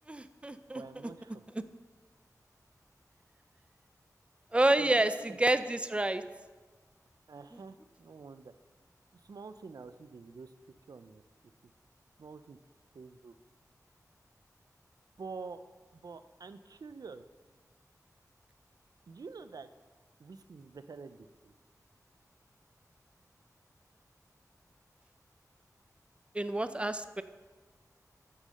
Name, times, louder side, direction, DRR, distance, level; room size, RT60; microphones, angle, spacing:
voice 1, 0.1-0.8 1.5-1.6 4.5-6.2 7.5-7.6 26.3-27.2, right 1 dB, 15° right, 12 dB, 0.5 m, -29 dB
voice 2, 0.7-1.4 4.8-5.4 7.3-8.5 9.2-10.5 10.9-11.2 12.2-12.6 12.9-13.3 15.2-15.6 15.9-17.2 19.1-19.7 20.2-21.5, right 4 dB, 75° right, 11 dB, 0.5 m, -47 dB
9.3 x 6.5 x 6.4 m, 1.3 s
wide cardioid pair, 95°, 7 cm